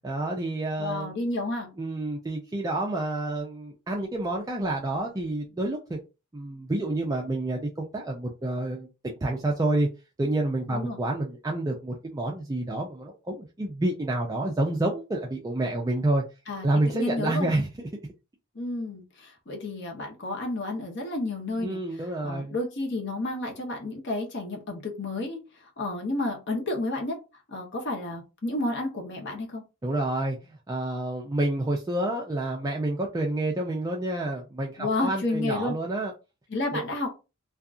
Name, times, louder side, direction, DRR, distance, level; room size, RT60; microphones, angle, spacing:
voice 1, 0.0-1.1 1.8-6.0 6.3-9.9 10.2-16.2 16.6-17.9 21.6-22.6 29.8-36.1 36.7-36.8, right 2 dB, 15° right, 0.3 m, -29 dB
voice 2, 0.8-1.7 10.7-11.0 16.5-17.5 18.5-21.8 22.2-25.4 25.8-27.2 27.5-29.6 34.8-35.8 36.5-37.1, left 2 dB, 55° left, 0.9 m, -31 dB
2.7 x 2.3 x 2.4 m
head